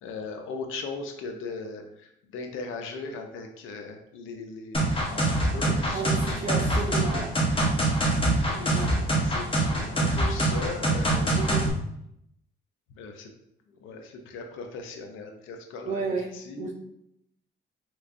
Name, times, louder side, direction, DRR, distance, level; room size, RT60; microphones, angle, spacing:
voice 1, 0.0-7.1 8.5-11.4 13.0-13.3 13.7-16.7, left 4 dB, 80° left, 4 dB, 0.5 m, -39 dB
sound 1, 4.7-11.7, right 1 dB, 25° left, 1.0 m, -24 dB
voice 2, 5.9-7.5 8.7-8.9 11.4-11.7 15.9-16.7, right 4 dB, 35° right, 1 dB, 0.4 m, -32 dB
3.3 x 3.1 x 2.5 m, 0.77 s
cardioid pair, 90°, 20 cm